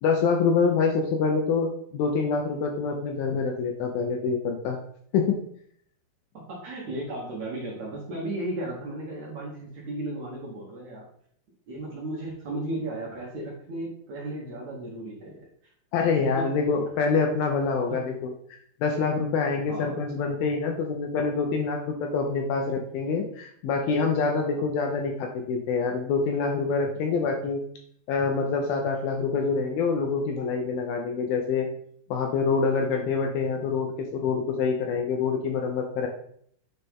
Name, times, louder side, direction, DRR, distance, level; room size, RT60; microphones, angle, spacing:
voice 1, 0.0-4.8 5.1-5.4 15.9-18.3 18.8-27.6 28.1-31.7 32.1-36.1, left 5 dB, 80° left, 2 dB, 2.2 m, -26 dB
voice 2, 6.3-11.1 11.7-15.7 16.3-16.5 17.9-18.0 19.7-20.0 24.6-24.7, right 1 dB, 60° right, -4 dB, 2.1 m, -35 dB
9.2 x 4.3 x 3.6 m, 0.65 s
omnidirectional pair, 4.8 m